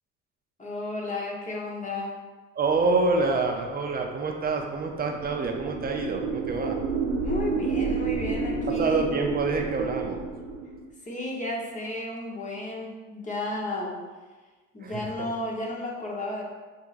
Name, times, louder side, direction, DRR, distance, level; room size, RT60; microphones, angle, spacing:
voice 1, 0.6-2.2 7.2-9.0 11.0-14.0 14.7-16.4, left 1 dB, 20° left, -3 dB, 1.1 m, -33 dB
voice 2, 2.6-6.8 8.8-10.2 14.8-15.0, right 3 dB, 25° right, 3 dB, 0.6 m, -26 dB
sound 1, 4.7-10.9, right 4 dB, 80° right, 0.7 m, -30 dB
6.1 x 2.7 x 2.6 m, 1.3 s
hypercardioid pair, 75°, 34 cm